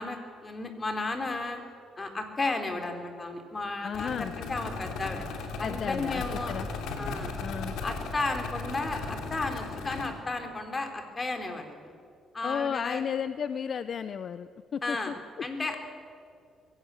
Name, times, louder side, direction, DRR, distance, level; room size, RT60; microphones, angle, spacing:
voice 1, 0.0-1.6 2.0-5.3 5.6-6.6 7.0-7.3 7.8-11.9 12.3-13.0 14.8-15.1 15.4-15.8, left 3 dB, 30° left, 5 dB, 3.5 m, -33 dB
voice 2, 3.8-4.3 5.6-6.7 7.4-7.8 12.4-15.5, left 7 dB, 55° left, 13 dB, 0.6 m, -33 dB
sound 1, 3.9-10.1, left 4 dB, 85° left, 2.7 m, -36 dB
22.5 x 17.0 x 8.3 m, 2.3 s
cardioid pair, 90°, 0 cm